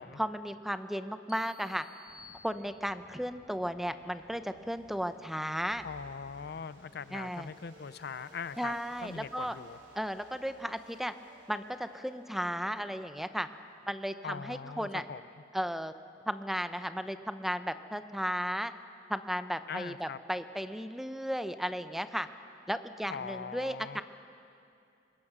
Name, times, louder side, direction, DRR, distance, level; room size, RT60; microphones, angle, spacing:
voice 1, 0.2-1.8 2.4-5.8 7.1-7.5 8.6-9.6 9.9-11.1 11.5-13.5 13.9-15.0 15.5-15.9 16.3-18.7 19.1-22.3 22.7-24.0, equal, ahead, 10 dB, 0.6 m, -35 dB
sound 1, 1.3-3.2, left 3 dB, 20° left, 1.3 m, -55 dB
sound 2, 2.1-14.9, equal, 75° right, 3.4 m, -59 dB
voice 2, 5.8-8.7 9.0-9.8 14.2-15.2 19.7-20.2 23.1-24.0, left 6 dB, 60° left, 15 dB, 0.5 m, -41 dB
24.0 x 21.5 x 6.1 m, 2.5 s
head